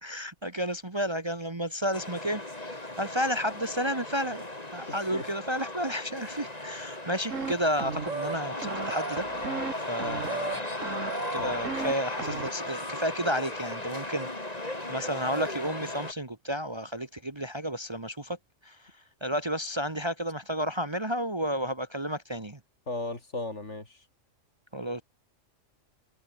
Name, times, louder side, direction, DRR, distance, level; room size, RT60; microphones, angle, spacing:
voice 1, 0.0-4.5 4.7-9.2 9.9-10.7 11.3-18.4 18.6-18.8 19.2-22.6 24.7-25.0, equal, 20° right, 1.4 m, -32 dB
sound 1, 1.9-16.1, left 1 dB, 30° left, 3.8 m, -36 dB
voice 2, 4.9-5.3 11.4-11.6 22.9-24.0, left 2 dB, 60° left, 4.4 m, -36 dB
sound 2, 7.3-7.5 7.8-8.3 8.6-9.7 10.0-10.5 10.8-11.9 12.2-12.5, right 5 dB, 70° right, 2.4 m, -35 dB
omnidirectional pair, 1.4 m